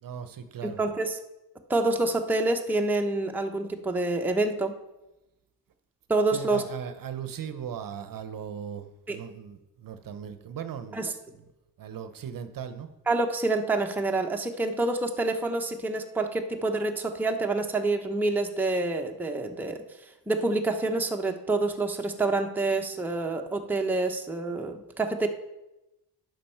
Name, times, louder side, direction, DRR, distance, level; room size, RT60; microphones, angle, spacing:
voice 1, 0.0-0.8 6.3-11.0 11.8-12.9, right 8 dB, 50° right, 10 dB, 0.7 m, -38 dB
voice 2, 0.8-1.2 1.7-4.7 6.1-6.6 9.1-9.2 10.9-11.1 13.1-19.8 20.3-25.3, right 2 dB, 5° right, 3 dB, 0.7 m, -27 dB
11.0 x 5.3 x 4.4 m, 0.95 s
cardioid pair, 105°, 45 cm